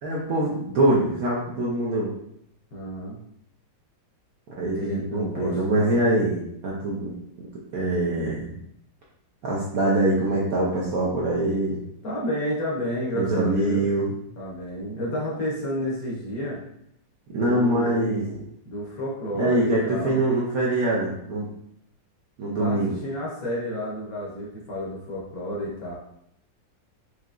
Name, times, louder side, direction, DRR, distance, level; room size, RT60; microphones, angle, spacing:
voice 1, 0.0-2.1 4.6-8.5 9.4-11.8 13.1-14.1 17.3-18.3 19.3-21.5 22.4-23.0, right 1 dB, 65° right, -5 dB, 0.9 m, -24 dB
voice 2, 2.7-3.2 4.6-6.0 12.0-13.9 14.4-16.6 17.3-18.4 18.6-20.2 22.4-25.9, equal, 55° left, -4 dB, 1.1 m, -31 dB
4.7 x 2.8 x 2.4 m, 0.75 s
omnidirectional pair, 2.1 m